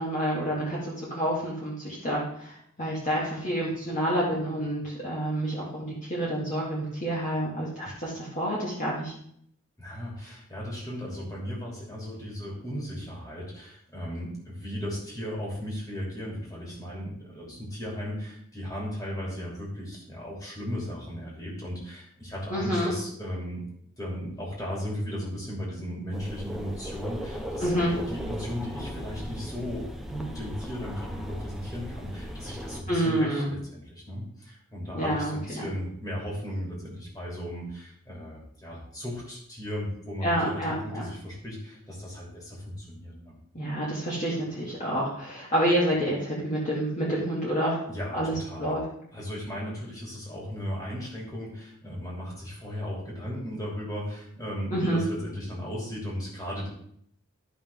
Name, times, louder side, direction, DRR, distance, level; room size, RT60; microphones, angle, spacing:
voice 1, 0.0-9.1 22.5-22.9 27.6-27.9 32.9-33.5 34.9-35.6 40.2-41.0 43.5-47.8 48.1-48.8 54.7-55.0, right 1 dB, 35° left, -7 dB, 2.2 m, -28 dB
voice 2, 9.8-23.7 24.0-27.7 28.1-43.4 47.9-48.8 49.1-56.7, equal, 15° left, -5 dB, 2.9 m, -36 dB
sound 1, 26.1-32.8, equal, ahead, 0.8 m, -37 dB
13.5 x 5.6 x 3.6 m, 0.67 s
head